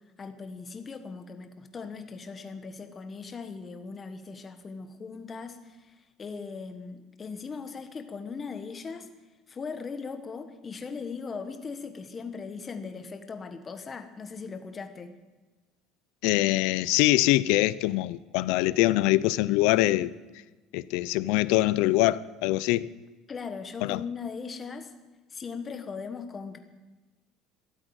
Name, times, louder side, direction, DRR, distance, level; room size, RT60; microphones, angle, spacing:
voice 1, 0.2-9.1 9.5-15.1 23.3-24.9 25.3-26.6, left 5 dB, 20° left, 1.3 m, -39 dB
voice 2, 16.2-20.1 20.7-22.9 23.8-24.0, left 17 dB, 75° left, 0.5 m, -23 dB
13.5 x 12.5 x 8.0 m
cardioid pair, 165°, 0 cm